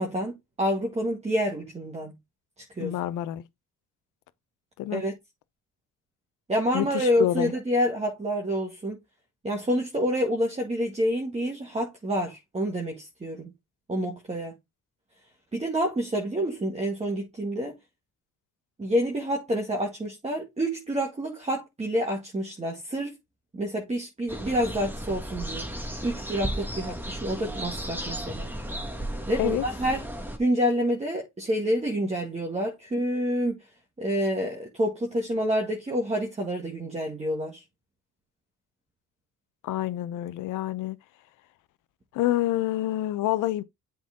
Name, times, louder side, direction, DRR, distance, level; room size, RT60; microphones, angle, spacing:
voice 1, 0.0-2.1 2.8-3.0 4.9-5.1 6.5-9.0 9.4-13.5 13.9-14.5 15.5-17.7 18.8-23.1 23.5-25.7 26.0-28.5 29.3-30.0 30.4-33.6 34.0-37.6, equal, 20° right, 2.0 m, -28 dB
voice 2, 2.8-3.4 4.8-5.0 6.7-7.5 29.4-29.6 39.6-41.0 42.1-43.6, left 14 dB, 85° left, 0.7 m, -27 dB
sound 1, 24.3-30.4, right 1 dB, 5° right, 1.6 m, -34 dB
7.8 x 4.0 x 3.7 m
cardioid pair, 90°, 30 cm